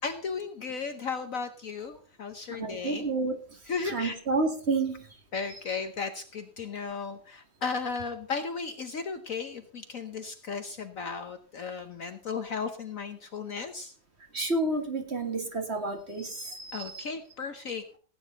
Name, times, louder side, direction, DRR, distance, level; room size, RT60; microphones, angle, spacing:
voice 1, 0.0-3.1 3.7-4.2 5.3-13.9 16.7-17.8, left 5 dB, 55° left, 8 dB, 1.2 m, -35 dB
voice 2, 2.6-3.4 3.9-4.9 14.3-17.0, right 3 dB, 35° right, 5 dB, 1.9 m, -30 dB
16.5 x 9.3 x 4.0 m, 0.41 s
omnidirectional pair, 2.0 m